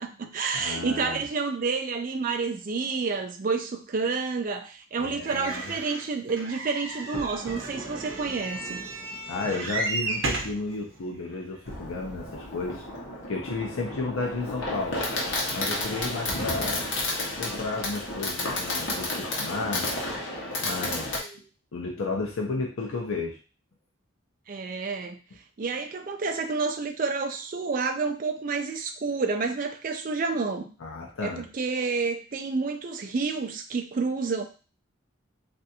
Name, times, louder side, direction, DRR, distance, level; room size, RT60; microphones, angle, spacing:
voice 1, 0.0-8.8 24.5-25.2 25.6-30.7 31.2-34.4, right 4 dB, 40° right, 6 dB, 0.4 m, -29 dB
voice 2, 0.5-1.2 5.0-5.7 9.3-12.8 13.3-15.0 15.5-17.0 17.4-19.9 20.6-21.2 21.7-23.4 30.8-31.5, left 3 dB, 85° left, 0 dB, 0.6 m, -33 dB
sound 1, 5.2-10.6 11.3-11.4 11.7-11.8, right 3 dB, 70° right, 0.7 m, -34 dB
Thunder, 6.9-11.0, right 1 dB, 35° left, 1.0 m, -44 dB
Fireworks, 11.7-21.2, left 2 dB, 65° left, 0.9 m, -31 dB
3.3 x 2.5 x 2.7 m, 0.36 s
head